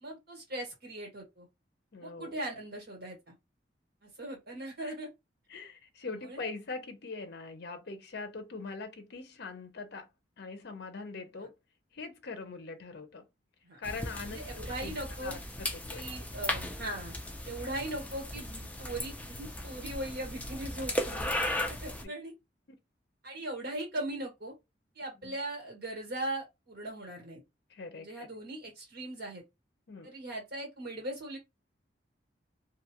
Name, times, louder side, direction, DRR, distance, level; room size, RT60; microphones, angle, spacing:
voice 1, 0.0-1.5 2.0-3.3 4.0-5.1 6.0-6.4 13.6-13.8 14.3-15.3 15.9-17.1 17.4-21.3 21.7-22.3 23.2-24.5 24.9-27.4 27.9-29.4 30.0-31.4, right 1 dB, 60° right, 1.5 m, -39 dB
voice 2, 1.9-2.4 4.8-4.9 5.5-10.1 10.4-11.5 11.9-13.2 13.8-14.4 14.8-14.9 15.2-16.1 25.2-25.3 27.7-28.3 29.9-30.1, left 3 dB, 60° left, 0.6 m, -42 dB
sound 1, 13.8-22.0, left 1 dB, 10° left, 0.4 m, -37 dB
2.6 x 2.3 x 2.8 m
head